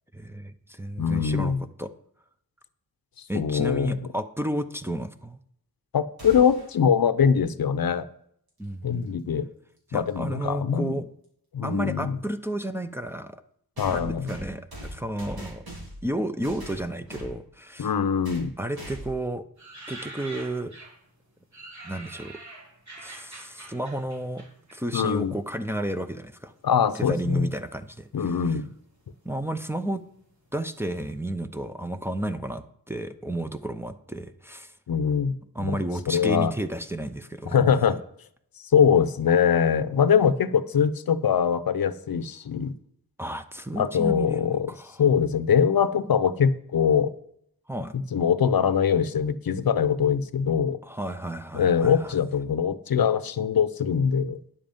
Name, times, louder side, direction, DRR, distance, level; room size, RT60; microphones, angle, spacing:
voice 1, 0.1-1.9 3.3-5.4 8.6-9.1 9.9-11.1 11.6-13.3 13.8-15.6 16.0-17.9 18.6-19.4 19.9-20.7 21.8-22.4 23.0-24.4 24.7-26.5 27.0-28.6 29.2-30.0 30.5-34.7 35.5-37.6 43.2-45.0 47.7-47.9 50.8-52.1, right 1 dB, 5° right, 6 dB, 0.7 m, -32 dB
voice 2, 1.0-1.6 3.3-4.0 5.9-8.1 8.8-9.5 9.9-11.0 11.5-12.2 13.8-14.3 17.8-18.5 24.9-25.3 26.6-27.5 28.1-28.7 34.9-35.8 36.1-36.5 37.5-38.0 38.7-42.7 43.8-44.7 45.0-47.1 47.9-50.8 51.5-54.4, left 7 dB, 70° left, 14 dB, 0.7 m, -23 dB
sound 1, 6.2-6.7 8.9-9.0 10.1-10.2 13.8-16.1 16.4-17.4 18.2-18.5 18.7-19.2, equal, 75° right, 4.3 m, -40 dB
sound 2, 19.6-21.1 21.5-25.4 25.7-26.5 27.2-27.7 28.0-28.1 28.3-30.6 30.9-31.0, right 2 dB, 50° right, 4.4 m, -45 dB
10.0 x 7.5 x 5.2 m, 0.69 s
wide cardioid pair, 75°, 37 cm